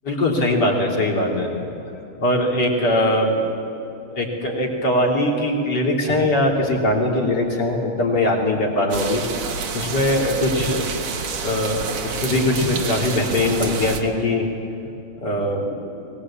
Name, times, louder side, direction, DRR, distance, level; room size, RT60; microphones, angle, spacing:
voice 1, 0.0-1.5 2.2-3.7 4.1-9.4 9.7-11.0 11.3-14.5 15.2-15.8, left 1 dB, 50° left, -1 dB, 3.7 m, -21 dB
sound 1, 8.9-14.0, right 5 dB, 70° right, 2.4 m, -29 dB
22.5 x 19.5 x 8.7 m, 2.9 s
omnidirectional pair, 2.4 m